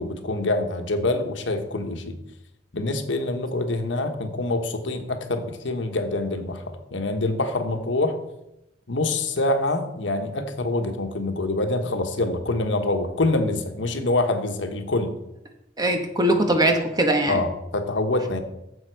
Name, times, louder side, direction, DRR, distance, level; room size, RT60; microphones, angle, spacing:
voice 1, 0.0-2.2 2.7-8.2 8.9-15.1 17.3-18.4, left 2 dB, 85° left, 6 dB, 1.2 m, -25 dB
voice 2, 15.8-17.4, right 1 dB, 20° right, 5 dB, 1.1 m, -21 dB
9.5 x 7.3 x 4.6 m, 0.87 s
head